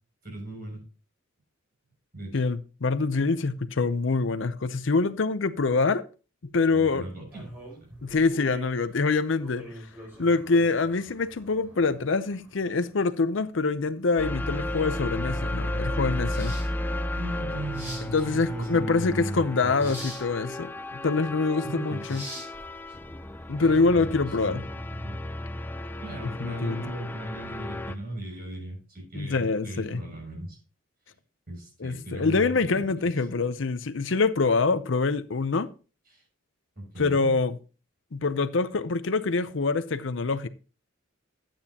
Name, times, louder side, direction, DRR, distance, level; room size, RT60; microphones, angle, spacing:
voice 1, 0.2-0.8 2.1-2.4 6.6-7.5 7.9-8.0 17.1-19.9 21.6-22.2 23.6-24.6 24.9-25.2 26.0-30.6 31.5-32.9 36.1-36.2 36.8-37.3, right 1 dB, 45° right, 6.2 m, -37 dB
voice 2, 2.3-6.1 6.5-7.0 8.0-9.7 10.2-16.6 18.1-22.2 23.5-24.6 26.4-26.8 29.1-30.0 31.8-35.7 37.0-37.6 38.1-40.5, left 4 dB, 65° left, 0.6 m, -25 dB
sound 1, 7.3-23.5, right 1 dB, 10° right, 5.5 m, -46 dB
sound 2, 14.2-28.0, left 1 dB, 10° left, 0.4 m, -34 dB
12.0 x 8.9 x 2.8 m
head